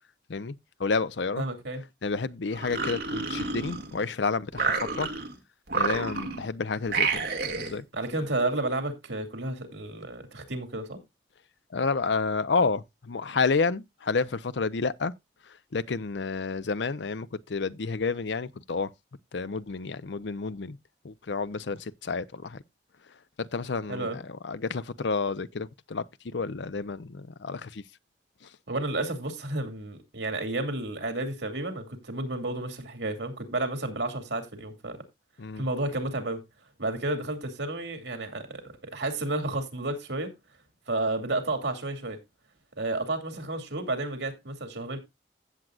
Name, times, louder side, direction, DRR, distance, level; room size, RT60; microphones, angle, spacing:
voice 1, 0.8-1.4 2.0-5.1 5.7-7.8 11.7-12.8 13.1-15.1 15.7-18.9 19.3-20.8 21.0-22.6 23.5-24.1 24.4-26.0 26.3-27.7 35.4-35.6, left 4 dB, 85° left, 0.6 m, -30 dB
voice 2, 1.4-1.8 7.9-11.0 23.9-24.2 28.7-35.0 35.6-36.4 36.8-40.3 40.9-42.2 42.8-45.0, right 2 dB, 85° right, 2.5 m, -31 dB
sound 1, 2.5-4.1 4.5-5.3 5.7-6.5 6.9-7.8, right 4 dB, 65° right, 1.9 m, -29 dB
15.5 x 7.5 x 2.4 m
head